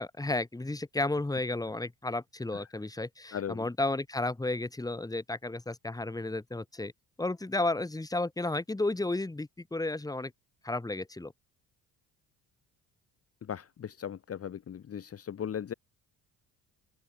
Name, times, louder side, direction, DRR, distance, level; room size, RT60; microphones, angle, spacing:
voice 1, 0.0-6.9 7.2-10.3 10.6-11.3, left 2 dB, 10° left, 2.1 m, -32 dB
voice 2, 3.3-3.7 13.4-15.7, left 9 dB, 40° left, 1.2 m, -38 dB
open air
cardioid pair, 95°, 37 cm